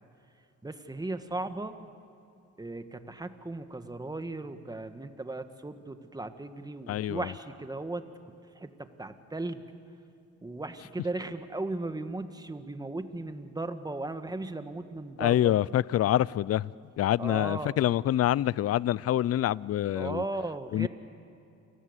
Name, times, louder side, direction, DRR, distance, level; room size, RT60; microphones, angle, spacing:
voice 1, 0.6-1.8 2.6-8.0 8.5-9.6 10.4-15.5 17.2-17.7 19.9-20.9, right 2 dB, 15° right, 1.5 m, -36 dB
voice 2, 6.9-7.3 15.2-16.7 17.0-20.2 20.7-20.9, left 12 dB, 55° left, 0.5 m, -26 dB
28.5 x 19.0 x 8.1 m
cardioid pair, 90°, 30 cm